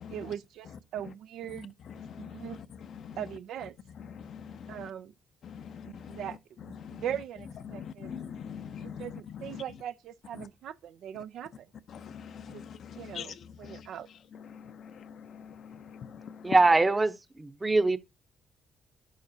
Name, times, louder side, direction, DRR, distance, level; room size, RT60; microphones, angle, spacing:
voice 1, 0.1-1.7 2.2-2.6 3.2-3.8 4.7-5.1 5.9-8.1 8.7-11.7 12.5-12.6 13.0-14.1, right 10 dB, 75° right, 0.4 m, -40 dB
voice 2, 2.0-2.5 2.9-3.2 4.1-4.9 5.4-6.2 6.8-7.0 7.7-9.1 9.3-9.6 11.9-13.3 13.6-13.8 14.5-16.5, left 7 dB, 65° left, 0.5 m, -43 dB
voice 3, 16.4-18.0, right 3 dB, 20° right, 0.8 m, -23 dB
11.0 x 4.8 x 2.7 m
cardioid pair, 90°, 0 cm